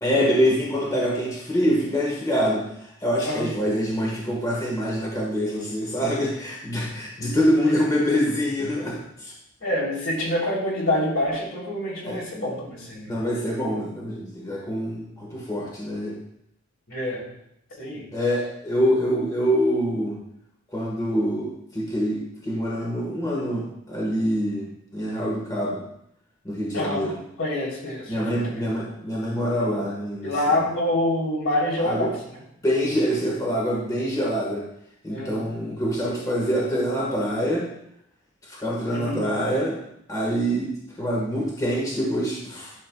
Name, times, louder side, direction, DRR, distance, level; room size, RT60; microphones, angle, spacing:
voice 1, 0.0-9.3 12.0-12.2 13.1-16.1 18.1-20.2 20.7-25.8 26.4-27.1 28.1-30.3 31.8-32.1 32.6-34.6 35.0-37.6 38.5-39.8 40.1-40.7 41.0-42.7, equal, 15° left, -4 dB, 1.4 m, -25 dB
voice 2, 9.6-13.2 16.9-17.2 17.8-18.0 26.7-27.1 27.4-28.7 30.2-32.1 35.1-35.5 38.9-39.2, left 1 dB, 70° left, -4 dB, 3.2 m, -26 dB
11.0 x 6.6 x 2.3 m, 0.77 s
head